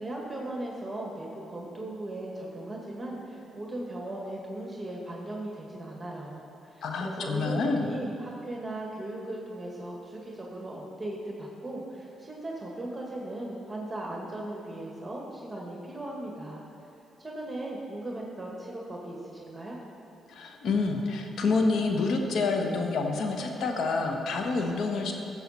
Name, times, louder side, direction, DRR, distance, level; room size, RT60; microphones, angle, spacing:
voice 1, 0.0-16.6 17.2-19.8, right 1 dB, 20° right, -3 dB, 1.9 m, -38 dB
voice 2, 6.8-7.8 20.3-25.1, left 3 dB, 70° left, 3 dB, 1.2 m, -28 dB
13.5 x 7.4 x 4.3 m, 2.7 s
supercardioid pair, 55°, 0 cm